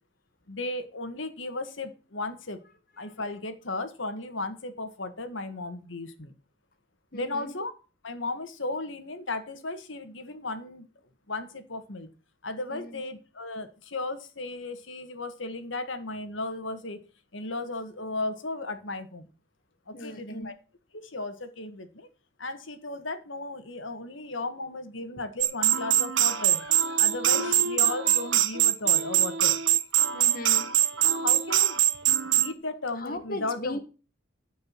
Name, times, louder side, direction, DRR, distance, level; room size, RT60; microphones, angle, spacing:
voice 1, 0.5-2.6 3.0-6.3 7.1-7.7 8.0-10.9 11.3-12.1 12.4-17.0 17.3-19.3 19.9-20.5 20.9-22.1 22.4-29.6 31.0-31.8 32.4-33.8, left 2 dB, 75° left, 1.8 m, -35 dB
voice 2, 7.1-7.5 12.7-13.0 19.9-20.5 27.3-27.5 30.1-31.0 33.0-33.8, left 1 dB, 45° left, 1.8 m, -38 dB
sound 1, 25.4-32.5, right 12 dB, 75° right, 1.0 m, -23 dB
13.5 x 5.3 x 7.6 m
head